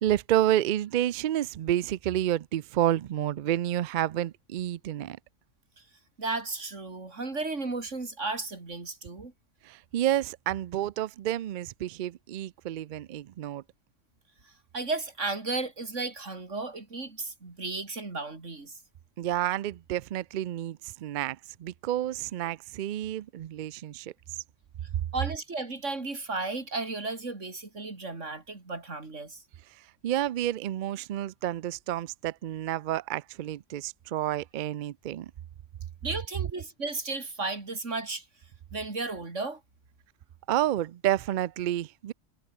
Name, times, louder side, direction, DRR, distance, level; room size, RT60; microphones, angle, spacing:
voice 1, 0.0-5.2 9.6-13.6 19.2-24.1 29.7-35.3 40.5-42.1, right 12 dB, 60° right, 0.5 m, -30 dB
voice 2, 6.2-9.3 14.4-18.8 25.1-29.4 36.0-38.3 38.7-39.6, right 3 dB, 90° right, 3.7 m, -34 dB
omnidirectional pair, 1.2 m